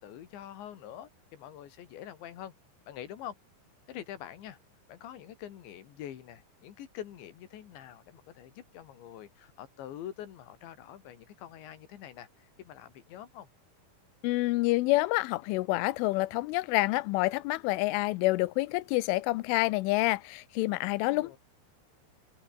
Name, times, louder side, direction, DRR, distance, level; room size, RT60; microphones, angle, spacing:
voice 1, 0.0-2.5 2.9-3.4 3.9-4.6 4.9-13.5 21.0-21.4, left 11 dB, 70° left, 4.4 m, -45 dB
voice 2, 14.2-21.4, left 20 dB, 85° left, 3.2 m, -28 dB
omnidirectional pair, 5.7 m